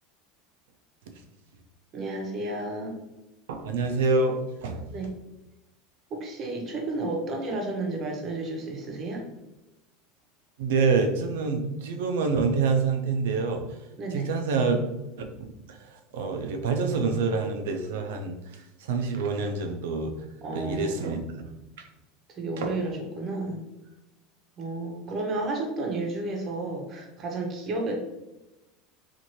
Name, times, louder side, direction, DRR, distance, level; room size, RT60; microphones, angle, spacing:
voice 1, 1.9-3.0 4.9-5.1 6.1-9.3 14.0-14.3 20.4-21.1 22.3-23.7 24.6-28.0, right 2 dB, 40° right, 2 dB, 0.8 m, -32 dB
voice 2, 3.5-4.9 10.6-13.6 14.1-14.8 15.2-18.4 18.8-20.1 20.5-21.2 22.6-22.8, right 4 dB, 80° right, 5 dB, 0.4 m, -27 dB
2.7 x 2.5 x 2.9 m, 0.99 s
hypercardioid pair, 95°, 0 cm